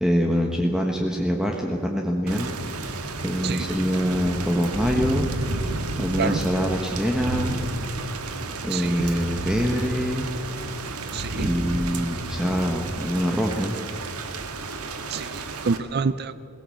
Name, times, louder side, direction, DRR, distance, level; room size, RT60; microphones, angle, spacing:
voice 1, 0.0-2.9 3.2-5.3 6.0-7.6 8.6-10.3 11.3-13.8, equal, 5° right, 1 dB, 1.2 m, -24 dB
Thunder / Rain, 2.3-15.8, right 2 dB, 85° right, 1.7 m, -31 dB
voice 2, 8.7-9.0 11.1-11.5 15.1-16.3, right 5 dB, 45° right, 14 dB, 0.5 m, -27 dB
21.5 x 17.0 x 7.7 m, 2.9 s
head